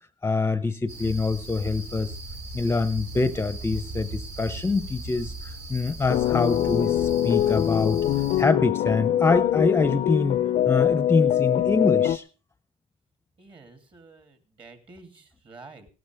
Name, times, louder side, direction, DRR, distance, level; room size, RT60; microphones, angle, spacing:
voice 1, 0.2-2.1 2.5-8.0 8.4-12.2, left 3 dB, 15° left, 13 dB, 0.7 m, -25 dB
sound 1, 0.9-8.4, right 2 dB, 85° right, 3.3 m, -38 dB
sound 2, 6.1-12.2, left 11 dB, 60° left, 0.6 m, -23 dB
voice 2, 13.4-15.9, right 3 dB, 35° right, 7 dB, 3.0 m, -49 dB
17.5 x 13.0 x 3.5 m, 0.35 s
cardioid pair, 95°, 14 cm